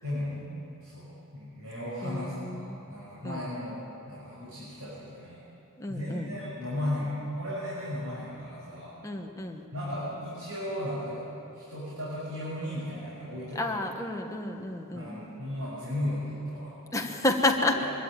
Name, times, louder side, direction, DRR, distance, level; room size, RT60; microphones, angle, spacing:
voice 1, 0.0-5.4 5.9-8.9 9.7-11.2 11.5-13.6 14.9-16.7 17.7-17.9, left 1 dB, 85° right, -8 dB, 6.1 m, -35 dB
voice 2, 2.0-2.8 3.2-3.4 5.8-6.3 9.0-9.6 13.5-15.1 16.9-17.7, left 2 dB, 15° left, 2 dB, 1.3 m, -30 dB
24.0 x 13.5 x 9.1 m, 2.8 s
head